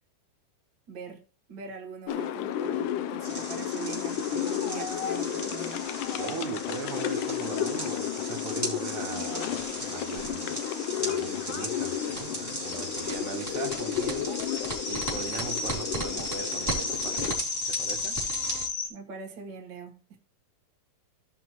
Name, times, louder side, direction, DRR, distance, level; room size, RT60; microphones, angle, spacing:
voice 1, 0.9-1.2 1.5-5.9 18.9-20.2, right 5 dB, 80° right, 0.9 m, -42 dB
sound 1, 2.1-17.4, left 10 dB, 80° left, 1.9 m, -33 dB
sound 2, 3.2-18.7, right 1 dB, 5° left, 2.7 m, -37 dB
voice 2, 6.2-10.6 11.0-18.2, right 6 dB, 65° right, 2.3 m, -39 dB
sound 3, 9.2-9.3 9.5-9.6 9.9-18.9, left 5 dB, 50° left, 2.3 m, -35 dB
16.5 x 5.9 x 3.0 m
omnidirectional pair, 4.4 m